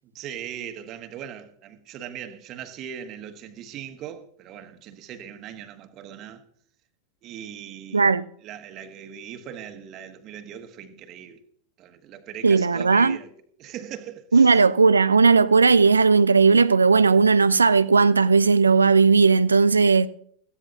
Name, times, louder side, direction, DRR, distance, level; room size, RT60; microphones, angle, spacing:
voice 1, 0.0-6.4 7.2-8.1 8.4-11.4 11.8-13.3 13.6-14.6, right 9 dB, 35° right, 1.5 m, -39 dB
voice 2, 7.9-8.3 12.4-13.2 14.3-20.1, right 4 dB, 75° right, 0.4 m, -17 dB
18.0 x 15.0 x 2.8 m
figure-of-eight pair, 90°, 0 cm